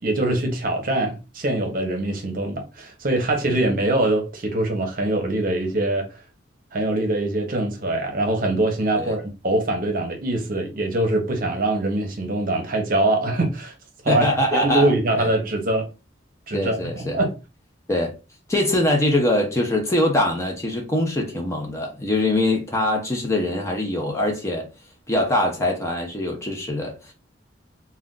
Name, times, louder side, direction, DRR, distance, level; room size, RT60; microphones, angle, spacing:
voice 1, 0.0-6.1 6.7-13.7 14.0-14.3 14.6-15.9 16.5-17.3, right 2 dB, 50° right, 0.7 m, -23 dB
voice 2, 14.1-15.3 16.5-17.2 17.9-18.1 18.5-24.7 25.1-27.1, left 1 dB, 15° left, 0.5 m, -23 dB
2.4 x 2.2 x 3.6 m
head